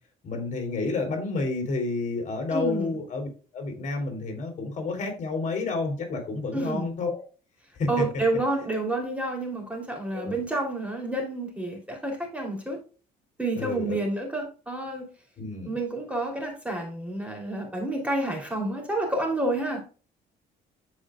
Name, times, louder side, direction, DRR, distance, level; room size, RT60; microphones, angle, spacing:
voice 1, 0.2-3.3 3.5-7.2 7.7-8.0 10.1-10.4 13.6-14.0 15.4-15.7, left 3 dB, 45° left, 3 dB, 3.3 m, -30 dB
voice 2, 2.5-3.0 6.5-6.9 7.9-12.8 13.4-15.1 15.6-19.8, right 2 dB, 10° right, 1 dB, 3.0 m, -29 dB
13.5 x 5.0 x 2.3 m, 0.35 s
cardioid pair, 110°, 17 cm